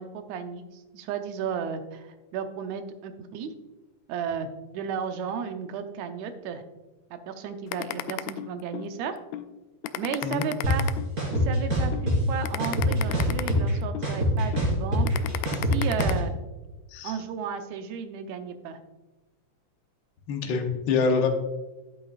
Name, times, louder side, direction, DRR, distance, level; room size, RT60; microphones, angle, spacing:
voice 1, 0.0-3.5 4.1-6.6 7.1-9.2 10.0-10.9 11.3-15.1 15.7-16.3 17.0-18.8, right 7 dB, 75° right, 7 dB, 2.0 m, -34 dB
sound 1, 7.7-8.9 9.3-9.5 9.8-11.5 11.9-12.1 12.4-14.1 14.5-14.7 15.1-16.1, left 14 dB, 80° left, 1.7 m, -33 dB
sound 2, 10.6-10.7 11.2-12.2 12.6-13.7 14.0-16.2, equal, 30° right, 3.5 m, -24 dB
voice 2, 20.3-21.3, left 5 dB, 60° left, 4 dB, 1.2 m, -25 dB
12.0 x 8.2 x 2.4 m, 1.1 s
omnidirectional pair, 3.4 m